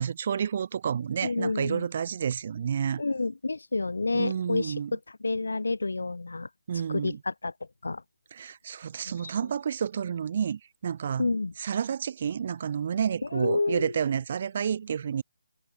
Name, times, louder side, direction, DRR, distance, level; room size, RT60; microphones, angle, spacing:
voice 1, 0.0-3.0 4.1-4.9 6.7-7.2 8.3-11.3 11.6-15.2, right 7 dB, 35° right, 3.4 m, -30 dB
voice 2, 1.2-1.9 3.0-6.5 6.9-7.5 7.8-8.0 9.2-9.3 11.2-11.5 13.2-13.9, left 3 dB, 80° left, 1.9 m, -29 dB
figure-of-eight pair, 165°, 0 cm